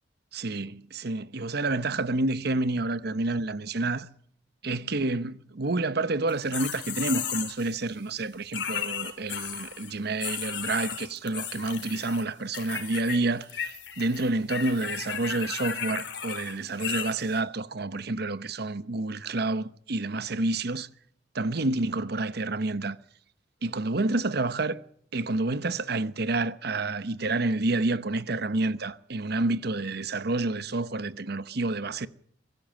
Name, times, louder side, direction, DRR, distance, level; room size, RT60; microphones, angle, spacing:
voice 1, 0.3-4.1 4.6-20.9 21.3-23.0 23.6-24.8 25.1-32.1, right 2 dB, 60° right, 1.0 m, -29 dB
sound 1, 6.3-7.7 8.5-9.9 10.2-12.2 12.5-13.2 13.4-17.4, left 8 dB, 70° left, 3.2 m, -34 dB
23.5 x 14.5 x 7.6 m
head